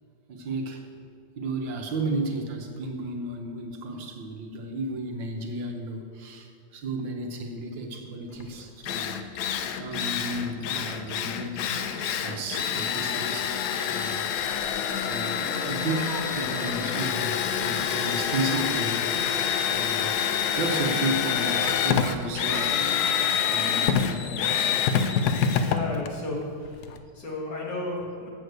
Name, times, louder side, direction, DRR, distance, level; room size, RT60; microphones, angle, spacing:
voice 1, 0.3-0.8 1.4-9.2 9.8-13.6 13.9-14.3 15.1-19.1 19.6-20.2 20.6-23.0 23.5-24.9, right 2 dB, 70° right, 3 dB, 1.7 m, -33 dB
Drill, 8.4-8.5 8.8-27.0, left 8 dB, 70° left, 0.9 m, -27 dB
Fowl, 14.4-23.4, right 5 dB, 90° right, 1.7 m, -45 dB
voice 2, 25.6-28.3, left 2 dB, 55° left, -4 dB, 2.6 m, -33 dB
7.5 x 6.4 x 8.0 m, 2.3 s
omnidirectional pair, 2.2 m